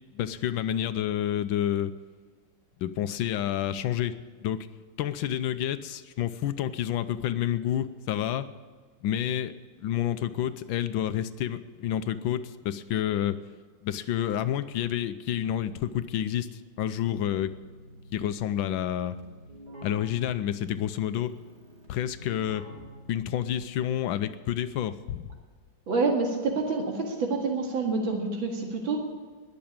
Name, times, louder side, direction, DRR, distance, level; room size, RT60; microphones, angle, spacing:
voice 1, 0.1-1.9 2.8-4.1 4.4-4.6 5.0-8.5 9.0-13.4 13.8-17.5 18.1-19.2 19.8-21.3 21.9-22.6 23.1-25.3, left 11 dB, 85° left, 12 dB, 1.4 m, -29 dB
Keyboard (musical), 17.3-24.2, equal, 50° right, 4.4 m, -48 dB
voice 2, 25.9-29.0, right 3 dB, 75° right, 1 dB, 2.7 m, -27 dB
20.5 x 6.9 x 8.8 m, 1.5 s
omnidirectional pair, 2.2 m